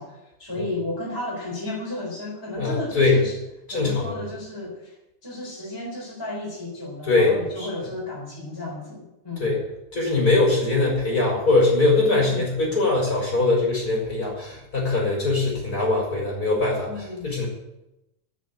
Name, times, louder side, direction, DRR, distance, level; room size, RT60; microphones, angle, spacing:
voice 1, 0.0-3.4 3.7-4.9 5.2-9.6 12.0-12.4 16.9-17.5, left 2 dB, 5° left, -4 dB, 3.8 m, -33 dB
voice 2, 2.6-3.2 3.7-4.2 7.0-7.7 9.4-9.6 9.9-17.5, left 2 dB, 25° left, -2 dB, 5.4 m, -22 dB
13.0 x 7.4 x 8.9 m, 0.92 s
omnidirectional pair, 3.7 m